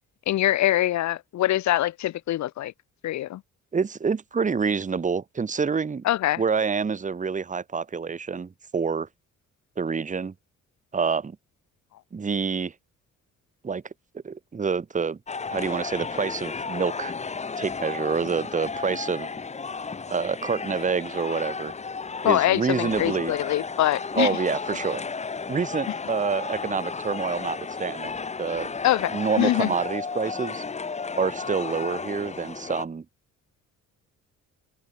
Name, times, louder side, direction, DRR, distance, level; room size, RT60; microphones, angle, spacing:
voice 1, 0.3-2.7 3.0-3.4 6.0-6.4 22.2-24.3 28.8-29.7, left 14 dB, 65° left, 0.8 m, -24 dB
voice 2, 3.7-6.0 6.4-9.1 9.8-10.3 10.9-11.4 12.1-12.7 13.6-13.8 14.2-15.2 15.5-17.1 17.6-19.3 20.1-21.7 22.2-23.3 24.1-25.0 25.5-28.7 29.1-30.6 31.2-33.0, right 5 dB, 25° right, 1.1 m, -27 dB
sound 1, 15.3-32.9, left 4 dB, 20° left, 0.9 m, -33 dB
cardioid pair, 90°, 30 cm